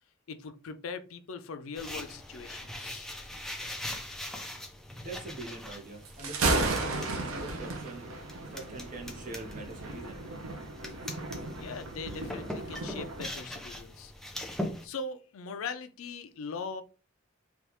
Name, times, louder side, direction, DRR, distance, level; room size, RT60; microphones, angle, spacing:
voice 1, 0.3-3.1 11.6-14.1 14.8-16.8, left 4 dB, 80° left, 0.4 m, -40 dB
sound 1, 1.7-14.9, left 1 dB, ahead, 0.4 m, -42 dB
voice 2, 5.0-8.1 8.5-10.2, right 2 dB, 40° right, 0.8 m, -43 dB
Thunder, 6.0-13.3, right 2 dB, 75° right, 0.6 m, -34 dB
3.4 x 2.4 x 2.9 m
head